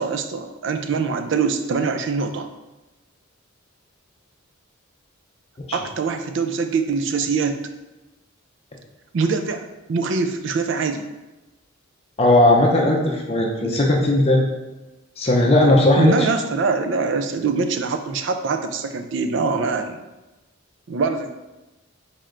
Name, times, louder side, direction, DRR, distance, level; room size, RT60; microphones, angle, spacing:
voice 1, 0.0-2.5 5.7-7.6 9.1-11.1 13.6-13.8 16.0-20.0 20.9-21.3, right 4 dB, 60° right, 7 dB, 0.4 m, -23 dB
voice 2, 12.2-14.4 15.2-16.1, left 1 dB, 30° left, -1 dB, 0.6 m, -17 dB
4.3 x 3.3 x 3.7 m, 1.1 s
head